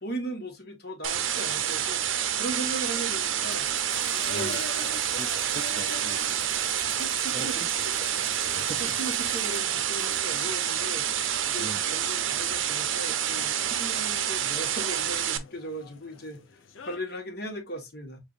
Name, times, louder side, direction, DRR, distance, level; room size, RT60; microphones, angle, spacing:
voice 1, 0.0-3.7 4.1-4.7 6.9-7.5 8.5-8.6 9.0-16.4 16.8-18.2, right 1 dB, 50° left, 1.3 m, -38 dB
sound 1, 1.0-15.4, right 10 dB, 80° right, 0.6 m, -28 dB
sound 2, 3.5-10.2, left 6 dB, 30° left, 0.6 m, -47 dB
sound 3, 3.8-17.0, left 4 dB, 80° left, 0.6 m, -47 dB
voice 2, 4.3-4.9 5.2-6.2 7.3-9.0 11.6-11.9, right 3 dB, 25° right, 0.3 m, -42 dB
6.5 x 2.5 x 2.4 m
head